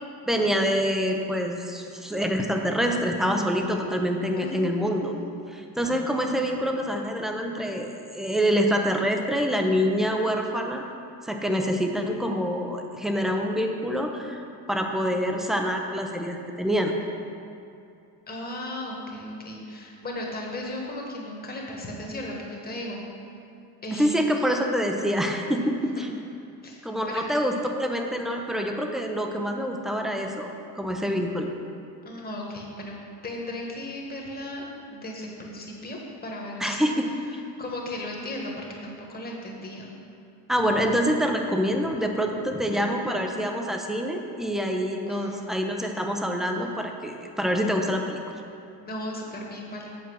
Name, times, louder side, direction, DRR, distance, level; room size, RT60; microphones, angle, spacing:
voice 1, 0.3-5.1 5.5-10.8 11.2-17.0 23.9-26.1 26.8-31.5 36.6-37.0 40.5-48.2, equal, ahead, 3 dB, 0.5 m, -26 dB
voice 2, 4.4-5.3 18.3-23.0 23.8-24.3 25.9-26.1 26.6-27.3 32.0-37.0 37.6-39.9 45.1-45.6 48.8-49.9, left 1 dB, 20° left, -1 dB, 1.3 m, -36 dB
8.2 x 4.5 x 6.3 m, 2.6 s
cardioid pair, 120°, 45 cm